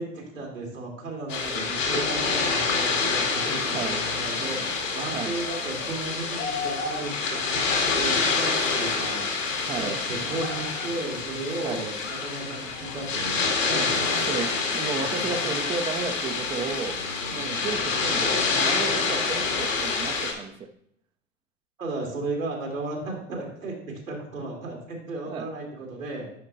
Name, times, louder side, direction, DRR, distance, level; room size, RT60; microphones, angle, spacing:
voice 1, 0.0-9.3 9.8-14.3 21.8-26.3, right 2 dB, 90° right, -1 dB, 2.4 m, -34 dB
sound 1, 1.3-20.3, left 4 dB, 75° left, 2.0 m, -27 dB
voice 2, 3.6-4.0 5.1-5.4 9.7-10.0 11.6-11.8 14.3-17.0 17.3-20.7 25.3-25.5, right 5 dB, 15° right, 6 dB, 0.4 m, -33 dB
9.9 x 5.1 x 2.6 m, 0.69 s
figure-of-eight pair, 95°, 38 cm